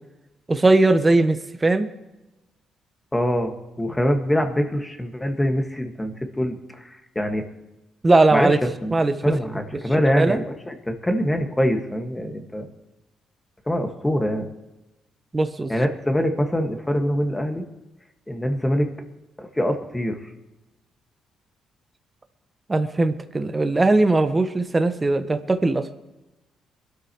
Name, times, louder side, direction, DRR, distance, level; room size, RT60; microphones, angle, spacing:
voice 1, 0.5-1.9 8.0-8.6 8.9-9.1 10.1-10.4 15.3-15.7 22.7-25.9, right 2 dB, 20° right, 9 dB, 1.2 m, -19 dB
voice 2, 3.1-7.5 8.3-8.9 9.2-12.7 13.7-14.5 15.7-17.6 18.3-18.9 19.4-20.3, equal, 10° left, 4 dB, 1.8 m, -24 dB
22.5 x 13.0 x 3.1 m, 1.0 s
cardioid pair, 90°, 0 cm